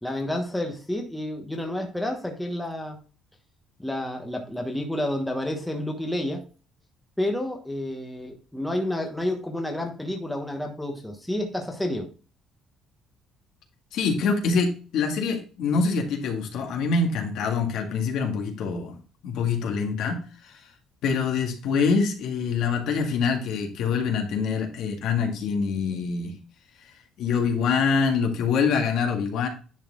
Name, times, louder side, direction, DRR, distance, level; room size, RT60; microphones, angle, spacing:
voice 1, 0.0-3.0 3.8-6.4 7.2-12.1, left 1 dB, 5° left, 2 dB, 1.2 m, -30 dB
voice 2, 13.9-19.0 19.2-20.5 21.0-26.3 27.2-29.5, left 5 dB, 70° left, 2 dB, 1.9 m, -25 dB
10.5 x 4.3 x 3.8 m, 0.36 s
cardioid pair, 175°, 0 cm